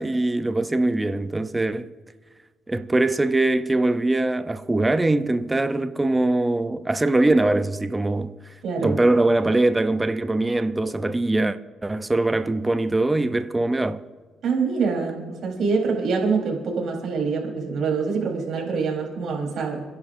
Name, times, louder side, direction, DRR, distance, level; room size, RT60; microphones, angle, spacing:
voice 1, 0.0-1.9 2.7-8.3 8.8-14.0, right 2 dB, 15° right, 0.6 m, -22 dB
voice 2, 8.6-9.0 14.4-19.8, right 4 dB, 70° right, 3.9 m, -25 dB
28.5 x 11.0 x 2.6 m
cardioid pair, 90°, 0 cm